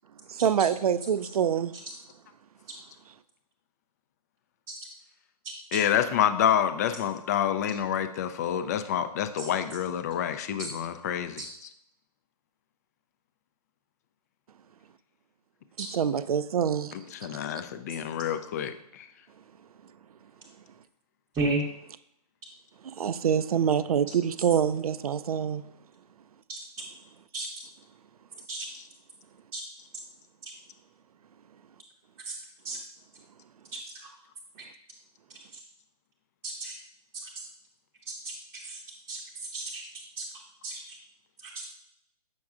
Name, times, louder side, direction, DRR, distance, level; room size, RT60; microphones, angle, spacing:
voice 1, 0.3-1.7 3.1-3.2 15.8-17.6 20.4-20.6 22.8-25.7, right 8 dB, 65° right, 0.4 m, -26 dB
voice 2, 5.7-11.4 17.2-19.1, left 9 dB, 25° left, 0.3 m, -28 dB
voice 3, 33.7-34.1 36.4-36.7 37.1-37.3 38.1-38.2 38.5-38.8 39.1-39.2 39.5-39.9 40.2-40.3 40.6-40.8 41.4-41.7, right 2 dB, 10° right, 0.8 m, -33 dB
7.6 x 6.0 x 2.4 m
figure-of-eight pair, 130°, 20 cm